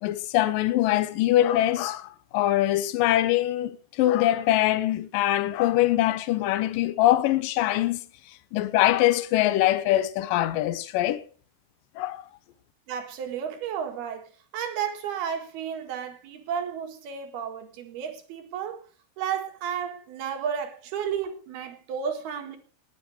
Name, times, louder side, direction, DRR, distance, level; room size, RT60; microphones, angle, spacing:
voice 1, 0.0-8.1 8.5-11.2 12.0-12.2, left 14 dB, 75° left, 2.3 m, -23 dB
voice 2, 12.9-18.8 19.2-22.6, right 8 dB, 80° right, 3.7 m, -32 dB
20.0 x 9.0 x 4.8 m
omnidirectional pair, 4.5 m